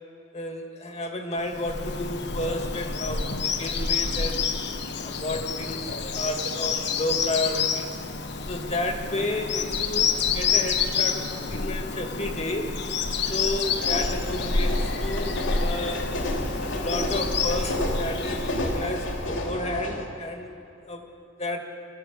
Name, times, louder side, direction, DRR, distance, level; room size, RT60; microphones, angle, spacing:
voice 1, 0.3-4.5 5.0-7.9 8.5-12.7 13.3-16.0 16.6-20.5 20.9-21.0 21.4-21.6, left 1 dB, 30° left, 3 dB, 1.8 m, -31 dB
Bird vocalization bird call bird song, 1.5-19.5, left 5 dB, 55° left, 1.2 m, -28 dB
sound 1, 13.2-20.1, left 1 dB, 75° left, 3.0 m, -31 dB
26.0 x 15.0 x 8.3 m, 2.9 s
head